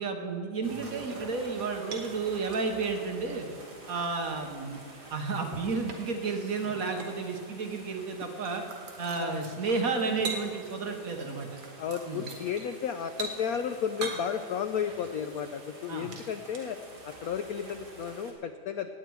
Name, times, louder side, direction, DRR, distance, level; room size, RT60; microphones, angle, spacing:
voice 1, 0.0-3.5 3.9-4.8 5.1-8.6 9.0-11.6 12.1-12.2 15.9-16.1, right 4 dB, 50° right, 3 dB, 1.4 m, -32 dB
sound 1, 0.6-18.3, right 2 dB, 30° right, 1.9 m, -49 dB
sound 2, 1.0-2.3 2.5-3.8 4.2-4.3 5.3-8.1 8.4-10.9 11.2-17.1 17.9-18.0, right 4 dB, 75° right, 2.2 m, -43 dB
voice 2, 11.8-18.9, left 7 dB, 80° left, 9 dB, 0.8 m, -33 dB
18.5 x 8.5 x 4.7 m, 2.4 s
omnidirectional pair, 2.1 m